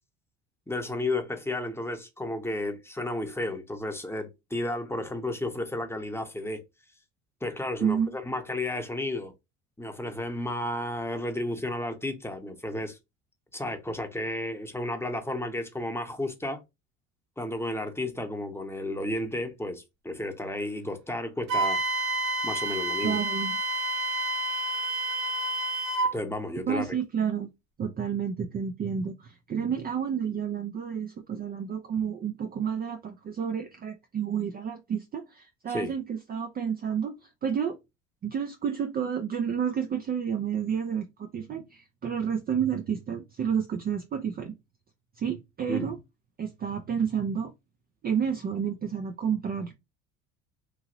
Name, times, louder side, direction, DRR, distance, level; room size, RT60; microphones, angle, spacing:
voice 1, 0.7-6.6 7.4-9.3 9.8-13.0 13.5-16.6 17.4-21.8 22.4-23.2 26.1-26.8 35.7-35.9 45.7-45.9, left 1 dB, 5° left, 0.8 m, -32 dB
voice 2, 7.8-8.2 23.0-23.6 26.7-27.5 27.8-37.8 38.2-44.5 45.2-46.0 46.4-47.5 48.0-49.7, right 7 dB, 25° right, 0.4 m, -30 dB
Wind instrument woodwind instrument, 21.5-26.1, right 2 dB, 50° right, 0.7 m, -29 dB
3.0 x 2.7 x 2.6 m
hypercardioid pair, 75°, 36 cm